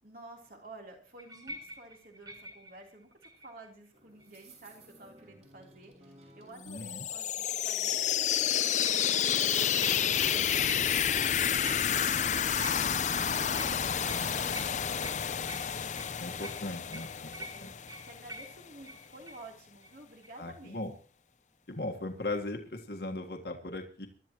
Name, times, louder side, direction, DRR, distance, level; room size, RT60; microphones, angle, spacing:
voice 1, 0.0-15.5 16.2-16.5 17.4-20.8, right 2 dB, 55° right, 1 dB, 3.6 m, -52 dB
sound 1, 1.2-3.7 4.2-4.6 8.8-9.1 9.7-10.3 10.7-11.1 11.6-12.2 12.6-19.5 19.8-19.9 20.2-20.4, right 1 dB, 20° right, 1.6 m, -47 dB
sound 2, 3.9-9.7, right 2 dB, 40° right, 4.7 m, -57 dB
voice 2, 6.7-7.0 10.0-10.1 14.1-14.4 16.2-17.3 17.6-17.7 20.4-20.9 21.7-24.1, left 2 dB, 65° left, 3 dB, 1.6 m, -38 dB
sound 3, 6.7-18.4, left 8 dB, 45° left, 0.6 m, -30 dB
23.5 x 12.0 x 3.1 m, 0.38 s
head